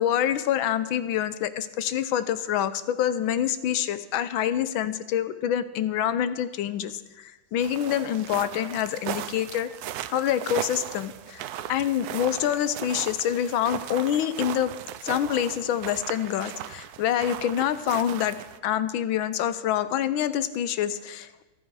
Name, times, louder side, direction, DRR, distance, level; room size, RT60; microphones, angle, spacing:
voice 1, 0.0-9.7 10.1-11.4 11.7-14.7 15.0-18.4 18.6-21.4, left 10 dB, 80° left, 13 dB, 1.5 m, -26 dB
sound 1, 7.6-18.6, right 11 dB, 80° right, 0.8 m, -37 dB
14.5 x 12.5 x 4.8 m, 1.1 s
omnidirectional pair, 2.2 m